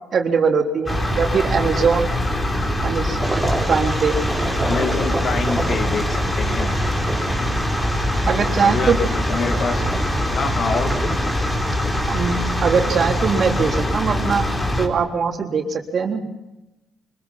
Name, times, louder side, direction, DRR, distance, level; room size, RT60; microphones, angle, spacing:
voice 1, 0.1-2.1 2.8-3.2 3.7-4.2 8.3-9.0 12.1-14.5 14.8-16.3, right 5 dB, 55° right, 1 dB, 3.8 m, -21 dB
sound 1, 0.9-14.9, left 1 dB, 25° left, 4.1 m, -23 dB
sound 2, 3.2-13.9, right 2 dB, 15° right, 4.6 m, -30 dB
voice 2, 4.6-6.8 8.6-9.8 10.3-11.2, left 5 dB, 60° left, 6 dB, 2.3 m, -26 dB
25.0 x 21.0 x 5.8 m, 0.96 s
cardioid pair, 90°, 0 cm